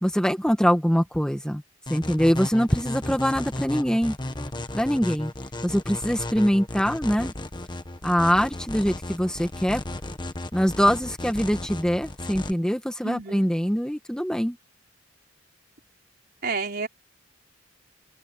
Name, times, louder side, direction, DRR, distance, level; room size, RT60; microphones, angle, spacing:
voice 1, 0.0-1.6 1.9-4.1 4.7-5.3 5.6-7.3 8.0-9.8 10.5-14.6, equal, 5° left, 1.8 m, -23 dB
sound 1, 1.9-12.5, left 1 dB, 25° left, 1.4 m, -34 dB
voice 2, 13.0-13.5 16.4-16.9, right 4 dB, 50° right, 4.7 m, -30 dB
open air
head